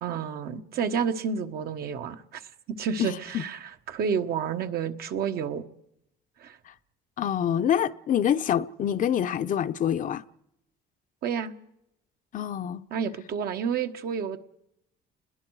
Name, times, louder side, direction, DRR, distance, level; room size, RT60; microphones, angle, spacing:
voice 1, 0.0-2.4 2.8-5.6 6.4-6.6 11.2-11.5 12.9-14.4, right 7 dB, 65° right, 1.4 m, -30 dB
voice 2, 7.2-10.2 12.3-12.8, left 9 dB, 50° left, 0.8 m, -26 dB
29.5 x 21.0 x 4.8 m
cardioid pair, 110°, 17 cm